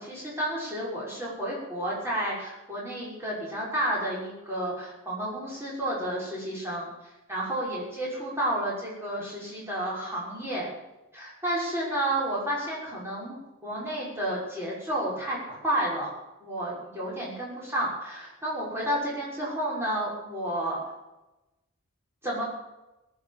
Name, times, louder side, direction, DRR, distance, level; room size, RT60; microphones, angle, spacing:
voice 1, 0.0-6.9 7.3-10.7 11.1-16.1 16.4-20.8 22.2-22.4, right 1 dB, 10° right, -6 dB, 6.2 m, -31 dB
18.5 x 7.0 x 8.8 m, 0.99 s
head